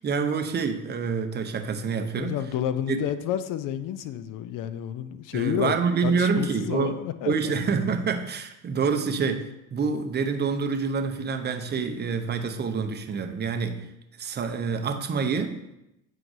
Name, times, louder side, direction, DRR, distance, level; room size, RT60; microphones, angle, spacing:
voice 1, 0.0-2.4 2.9-3.0 5.3-6.9 7.3-13.8 14.2-15.7, right 5 dB, 20° right, 6 dB, 0.6 m, -27 dB
voice 2, 2.2-5.7 6.0-7.5, left 10 dB, 45° left, 12 dB, 0.5 m, -30 dB
7.8 x 4.7 x 2.6 m, 0.88 s
hypercardioid pair, 70°, 46 cm